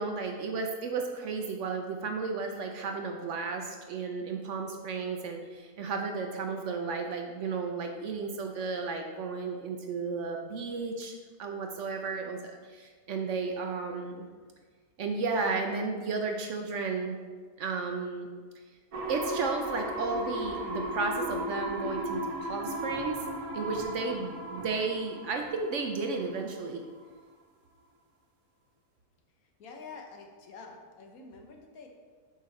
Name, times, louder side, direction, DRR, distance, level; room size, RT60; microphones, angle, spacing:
voice 1, 0.0-12.4 12.6-14.2 15.0-17.2 17.6-18.3 19.1-23.2 23.5-26.8, right 4 dB, 65° right, 4 dB, 0.8 m, -33 dB
sound 1, 18.9-26.6 27.0-27.1, right 1 dB, 80° right, 1.4 m, -36 dB
voice 2, 29.6-31.9, left 4 dB, 75° left, 2 dB, 1.3 m, -47 dB
6.4 x 5.1 x 4.0 m, 1.5 s
omnidirectional pair, 1.6 m